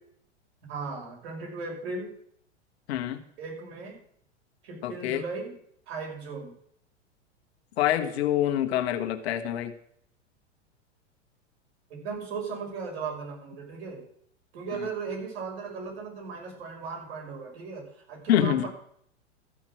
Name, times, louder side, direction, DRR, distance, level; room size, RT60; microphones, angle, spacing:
voice 1, 0.7-2.1 3.4-4.0 4.6-5.5 5.9-6.5 11.9-14.0 14.5-18.7, right 4 dB, 60° right, 0 dB, 5.7 m, -37 dB
voice 2, 2.9-3.2 4.8-5.2 7.8-9.7 18.3-18.7, left 11 dB, 60° left, 6 dB, 1.6 m, -26 dB
14.0 x 5.9 x 7.6 m, 0.67 s
hypercardioid pair, 100°, 36 cm